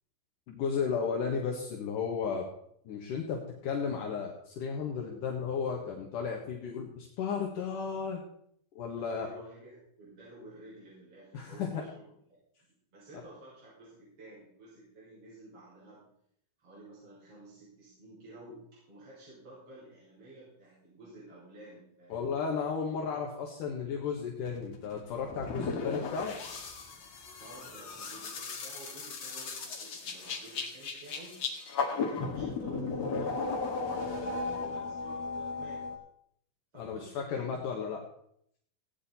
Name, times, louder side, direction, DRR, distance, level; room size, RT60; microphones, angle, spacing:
voice 1, 0.5-2.5 2.9-8.2 8.8-9.3 11.3-11.8 22.1-26.3 36.7-38.0, left 6 dB, 60° left, 0 dB, 2.3 m, -34 dB
voice 2, 9.0-12.1 12.9-16.0 16.6-22.3 27.4-31.4 31.9-35.9 36.7-37.9, right 2 dB, 30° right, -9 dB, 7.1 m, -52 dB
sound 1, 24.5-36.0, left 4 dB, 45° left, 2.4 m, -36 dB
17.0 x 9.8 x 4.3 m, 0.69 s
omnidirectional pair, 5.4 m